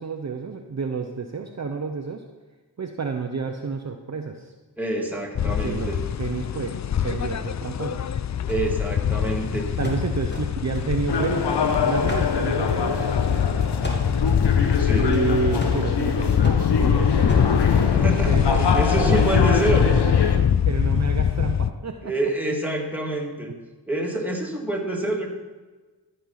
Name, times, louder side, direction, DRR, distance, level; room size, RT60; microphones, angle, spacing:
voice 1, 0.0-2.2 2.8-4.5 5.4-5.9 6.2-6.7 7.0-8.1 9.8-11.5 11.8-13.3 14.9-17.7 18.0-20.2 20.7-22.1, right 5 dB, 40° right, 4 dB, 0.9 m, -30 dB
voice 2, 4.8-6.0 8.5-9.7 14.8-15.1 17.9-19.9 22.0-23.5 23.9-25.3, right 1 dB, 5° right, 0 dB, 2.4 m, -27 dB
sound 1, 5.4-21.7, left 8 dB, 40° left, 0.5 m, -23 dB
sound 2, 8.5-11.7 12.1-13.6 13.8-18.0, left 1 dB, 25° left, 2.6 m, -34 dB
sound 3, 11.1-20.4, left 5 dB, 70° left, 1.1 m, -25 dB
13.0 x 5.5 x 5.7 m, 1.3 s
cardioid pair, 45°, 42 cm